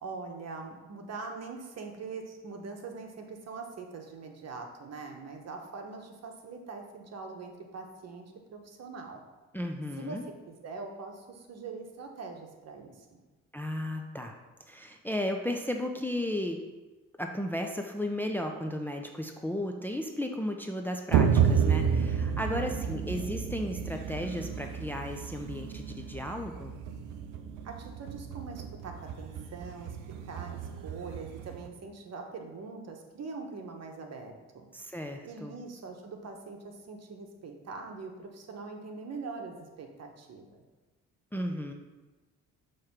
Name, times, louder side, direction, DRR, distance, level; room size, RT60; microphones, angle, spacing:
voice 1, 0.0-9.2 10.0-13.2 22.5-23.0 27.6-30.0 30.2-34.7 35.2-40.6, right 4 dB, 55° right, 3 dB, 1.1 m, -43 dB
voice 2, 9.5-10.2 13.5-14.4 14.7-16.6 17.2-26.7 34.7-35.5 41.3-41.7, left 1 dB, 5° left, 3 dB, 0.5 m, -34 dB
sound 1, 21.1-31.7, right 7 dB, 80° right, 0.6 m, -31 dB
6.4 x 3.2 x 5.8 m, 1.2 s
cardioid pair, 90°, 30 cm